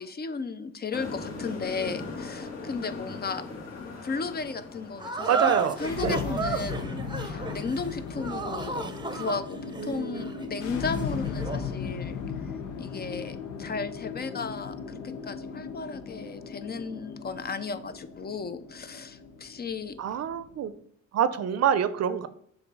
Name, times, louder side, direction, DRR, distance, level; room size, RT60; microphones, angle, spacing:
voice 1, 0.0-3.4 4.0-12.2 12.8-20.0, left 4 dB, 30° left, 11 dB, 0.5 m, -35 dB
sound 1, 0.9-8.6, left 3 dB, 60° left, 1.8 m, -40 dB
sound 2, 5.0-11.7, right 4 dB, 15° right, 0.7 m, -33 dB
voice 2, 5.3-5.8 6.0-6.2 9.8-10.3 20.0-20.7 21.1-22.3, right 8 dB, 55° right, 13 dB, 0.6 m, -26 dB
sound 3, 5.7-20.7, left 6 dB, 85° left, 1.0 m, -37 dB
6.9 x 2.6 x 5.4 m, 0.68 s
cardioid pair, 90°, 30 cm